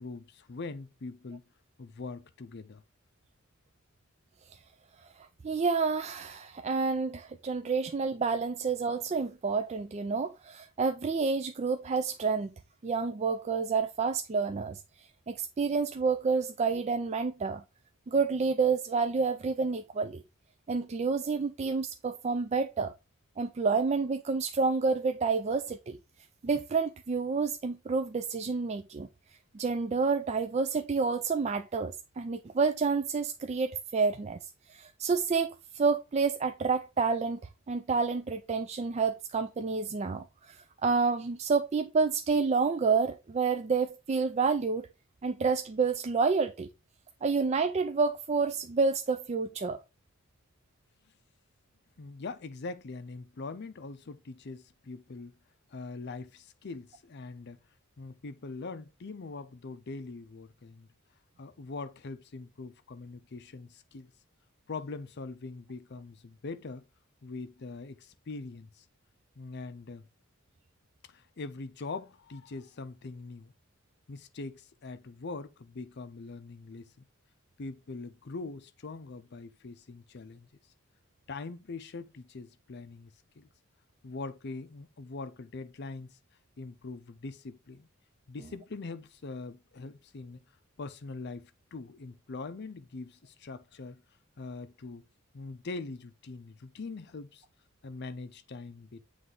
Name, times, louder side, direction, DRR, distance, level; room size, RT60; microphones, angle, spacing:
voice 1, 0.0-1.4 1.8-2.8 52.0-55.4 55.7-57.6 58.0-60.9 61.4-64.1 64.7-66.8 67.2-68.8 69.4-70.0 71.0-73.5 74.1-77.1 77.6-80.5 81.3-83.5 84.0-86.2 86.6-87.9 88.3-90.4 90.8-94.0 94.4-95.0 95.3-97.4 97.8-99.1, left 3 dB, 55° left, 0.6 m, -42 dB
voice 2, 5.4-12.5 12.8-14.8 15.3-17.6 18.1-20.2 20.7-22.9 23.4-26.0 26.4-29.1 29.5-34.4 34.7-37.4 37.7-44.9 45.2-46.7 47.2-49.8, right 4 dB, 30° right, 0.4 m, -29 dB
7.6 x 3.3 x 3.8 m
head